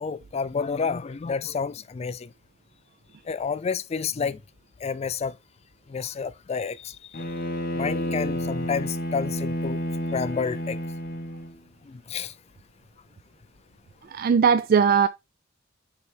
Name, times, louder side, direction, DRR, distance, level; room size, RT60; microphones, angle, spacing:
voice 1, 0.0-2.3 3.3-4.4 4.8-5.4 5.9-7.2 7.7-9.8 10.1-10.8 11.9-12.3, left 5 dB, 30° left, 0.3 m, -30 dB
Bowed string instrument, 7.1-11.6, equal, 50° left, 1.3 m, -30 dB
voice 2, 14.1-15.1, right 6 dB, 50° right, 0.3 m, -19 dB
6.8 x 3.3 x 4.8 m
head